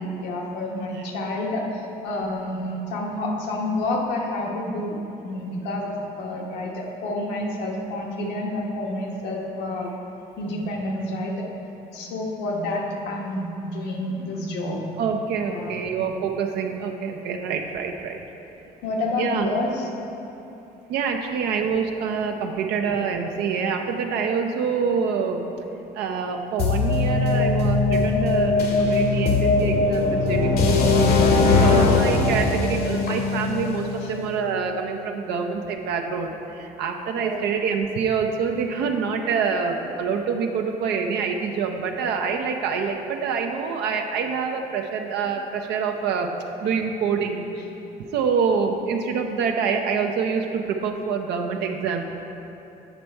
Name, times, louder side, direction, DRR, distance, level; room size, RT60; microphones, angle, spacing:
voice 1, 0.0-9.9 10.4-11.5 11.9-14.8 15.5-15.8 18.8-19.9 33.1-33.2 34.0-34.1 37.2-37.4, left 1 dB, 85° left, -1 dB, 1.2 m, -29 dB
voice 2, 15.0-18.2 19.2-19.5 20.9-25.5 25.9-46.3 46.6-47.4 48.1-52.1, right 6 dB, 80° right, 3 dB, 0.6 m, -26 dB
sound 1, 26.6-34.5, left 3 dB, 65° left, 1.0 m, -20 dB
8.1 x 5.3 x 4.5 m, 2.9 s
cardioid pair, 110°, 17 cm